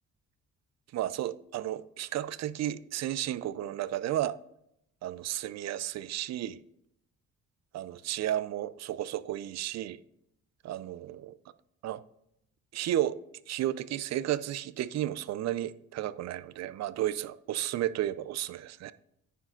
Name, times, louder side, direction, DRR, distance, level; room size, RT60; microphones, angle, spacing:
voice 1, 0.9-4.4 5.0-6.6 7.7-10.0 10.6-11.4 11.8-12.0 12.7-13.2 13.5-18.9, right 12 dB, 60° right, 0.4 m, -33 dB
9.6 x 5.0 x 3.8 m
cardioid pair, 90°, 30 cm